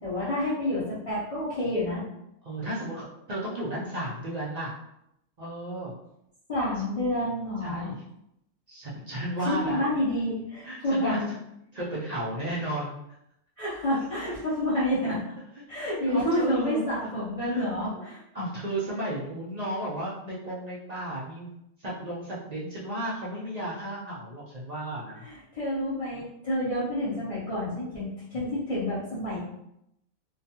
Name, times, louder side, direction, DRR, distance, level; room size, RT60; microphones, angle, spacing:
voice 1, 0.0-2.0 6.5-7.9 9.4-11.3 13.6-15.2 15.7-18.2 25.2-29.4, left 1 dB, 45° left, -10 dB, 0.5 m, -29 dB
voice 2, 2.4-4.7 5.4-5.9 7.6-8.0 8.7-9.8 10.6-11.4 11.7-13.0 14.1-14.4 15.8-16.9 17.2-18.0 18.3-21.5 21.8-25.3, right 1 dB, 70° right, -7 dB, 0.4 m, -34 dB
2.3 x 2.3 x 2.8 m, 0.80 s
omnidirectional pair, 1.4 m